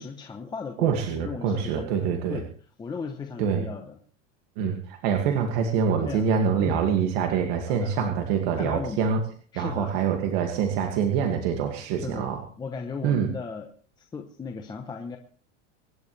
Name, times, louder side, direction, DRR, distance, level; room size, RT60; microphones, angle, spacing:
voice 1, 0.0-1.9 2.3-2.4 2.8-4.0 6.0-6.3 6.6-6.8 7.7-8.2 8.6-9.0 9.5-9.9 12.0-13.7 14.0-15.2, left 5 dB, 10° left, 4 dB, 0.9 m, -36 dB
voice 2, 0.8-2.4 3.4-3.6 4.6-9.2 9.6-12.4 13.0-13.3, right 7 dB, 50° right, 3 dB, 2.3 m, -25 dB
25.0 x 11.0 x 3.4 m, 0.43 s
supercardioid pair, 160°, 37 cm